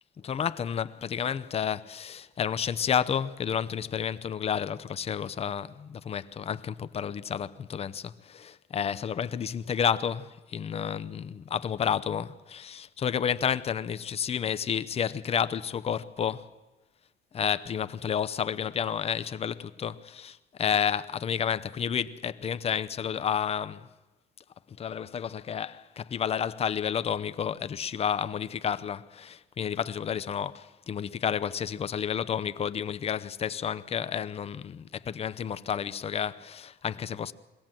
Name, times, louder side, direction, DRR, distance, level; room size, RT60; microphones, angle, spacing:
voice 1, 0.2-16.5 17.3-23.9 24.8-37.3, left 8 dB, 35° left, 0.7 m, -31 dB
22.5 x 16.5 x 7.6 m
cardioid pair, 110°, 17 cm